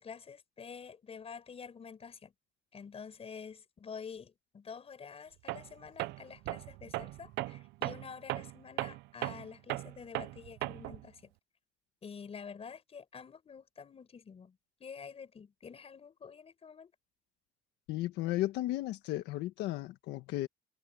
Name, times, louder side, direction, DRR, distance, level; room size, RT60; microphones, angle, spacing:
voice 1, 0.0-2.3 2.7-11.3 12.0-16.9, left 6 dB, 35° left, 5.2 m, -48 dB
Tools, 5.5-5.7 6.0-11.0, right 20 dB, 90° right, 0.5 m, -38 dB
voice 2, 17.9-20.5, left 16 dB, 90° left, 1.4 m, -34 dB
cardioid pair, 110°, 17 cm